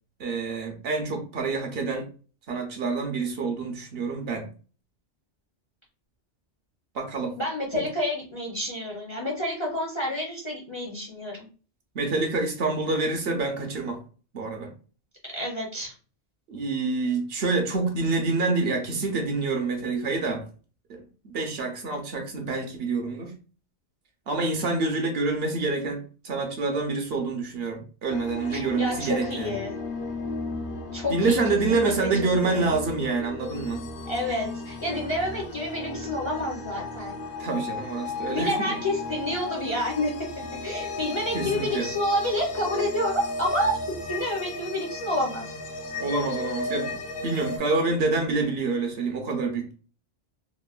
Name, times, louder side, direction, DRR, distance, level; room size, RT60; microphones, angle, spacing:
voice 1, 0.2-2.1 2.5-4.5 6.9-7.3 7.7-7.9 11.9-14.0 14.3-14.7 16.5-20.4 20.9-23.3 24.3-29.5 31.1-33.8 37.4-38.8 41.3-41.9 46.0-46.9 47.2-49.7, right 3 dB, 65° right, 3 dB, 0.8 m, -27 dB
voice 2, 7.4-11.5 15.3-15.9 28.5-29.8 30.9-32.1 32.4-32.7 34.1-37.1 38.3-40.1 40.6-43.8 44.1-45.4, left 1 dB, 35° left, -3 dB, 0.5 m, -29 dB
sound 1, 28.1-47.6, left 2 dB, 70° left, 0.8 m, -35 dB
2.9 x 2.1 x 2.3 m, 0.37 s
omnidirectional pair, 1.2 m